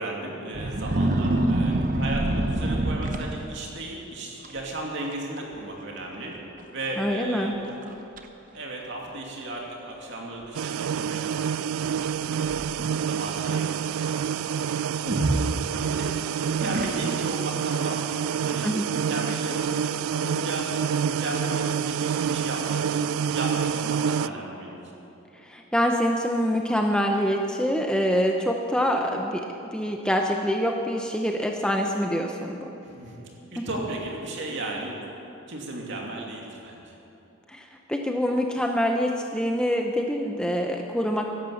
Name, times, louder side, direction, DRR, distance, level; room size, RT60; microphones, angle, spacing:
voice 1, 0.0-6.3 6.7-7.8 8.5-12.5 13.1-13.7 14.0-16.1 16.4-20.7 21.0-24.8 32.8-34.9 35.5-37.0, right 2 dB, 55° right, -1 dB, 2.7 m, -35 dB
sound 1, 0.5-3.8 4.4-4.7 5.0-5.4 5.7-5.8 6.6-6.7 7.2-7.3 7.8-8.3 9.1-9.2 12.0-13.0 15.0-16.1 16.6-17.3, right 1 dB, 35° right, 0.9 m, -27 dB
voice 2, 7.0-7.5 18.6-18.9 25.4-32.7 33.6-33.7 37.5-41.3, equal, 5° left, 2 dB, 0.6 m, -25 dB
sound 2, 10.5-24.3, right 8 dB, 75° right, 0.3 m, -27 dB
16.5 x 11.5 x 7.1 m, 3.0 s
head